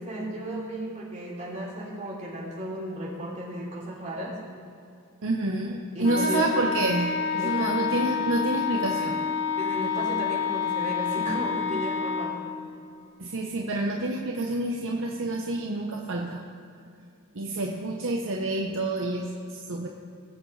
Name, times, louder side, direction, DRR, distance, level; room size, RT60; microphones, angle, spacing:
voice 1, 0.0-4.3 5.9-6.5 7.4-8.1 9.6-12.4, right 1 dB, 35° right, -5 dB, 3.1 m, -34 dB
voice 2, 5.2-9.3 13.2-16.4 17.3-19.9, right 2 dB, 60° right, 0 dB, 0.9 m, -28 dB
Wind instrument woodwind instrument, 6.0-12.4, left 6 dB, 55° left, 1.0 m, -28 dB
20.5 x 7.8 x 3.3 m, 2.5 s
head